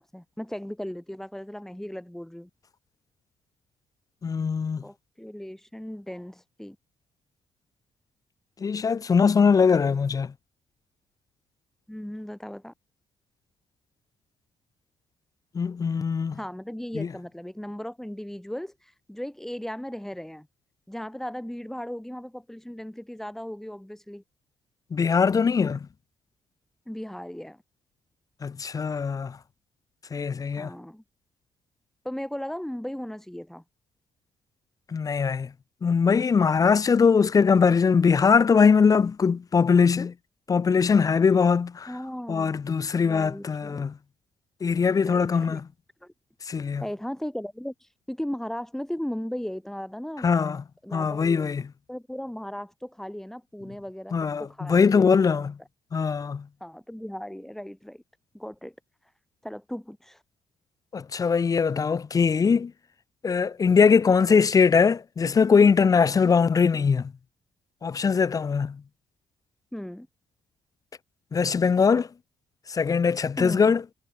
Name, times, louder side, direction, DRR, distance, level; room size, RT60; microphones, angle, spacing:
voice 1, 0.0-2.5 4.8-6.8 11.9-12.7 16.3-20.5 20.9-24.2 26.9-27.6 30.6-31.0 32.0-33.6 41.9-42.7 43.0-43.9 45.0-45.6 46.0-46.1 46.8-50.3 50.8-51.5 51.9-55.1 56.6-58.0 58.3-58.7 59.4-60.2 69.7-70.1 73.4-73.7, equal, 5° left, 5.1 m, -37 dB
voice 2, 4.2-4.8 8.6-10.3 15.5-16.4 16.9-17.1 24.9-25.8 28.4-29.4 30.1-30.7 34.9-35.5 35.8-40.1 40.5-41.9 42.3-43.9 44.6-45.6 46.5-46.8 50.2-50.6 50.9-51.6 54.1-55.6 55.9-56.4 60.9-62.7 63.2-67.1 67.8-68.8 71.3-72.1 72.7-73.8, left 5 dB, 35° left, 0.8 m, -21 dB
supercardioid pair, 70°, 10 cm